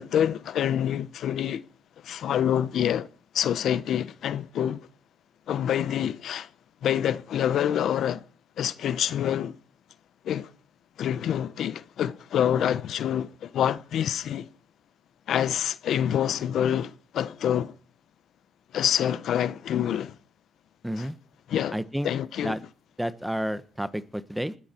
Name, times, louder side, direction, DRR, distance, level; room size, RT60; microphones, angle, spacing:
voice 1, 0.0-1.6 2.0-3.1 3.3-4.9 5.5-6.5 6.8-8.2 8.6-9.6 10.2-10.5 11.0-14.5 15.3-17.7 18.7-20.2 21.0-21.1 21.5-21.8 22.0-22.6, left 10 dB, 65° left, 0.9 m, -26 dB
voice 2, 20.8-21.2 21.7-22.1 22.4-22.6 23.0-24.5, equal, 5° right, 1.2 m, -30 dB
20.0 x 16.0 x 4.5 m
cardioid pair, 110°, 0 cm